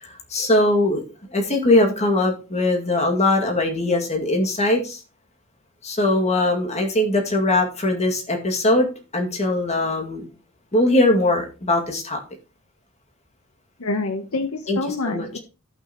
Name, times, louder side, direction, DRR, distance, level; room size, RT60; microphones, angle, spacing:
voice 1, 0.0-1.0 1.3-5.0 5.8-10.3 10.7-12.2 14.7-15.3, left 1 dB, 30° left, 2 dB, 2.2 m, -21 dB
voice 2, 13.8-15.4, left 3 dB, 75° left, 9 dB, 1.0 m, -27 dB
16.0 x 5.8 x 3.0 m, 0.32 s
head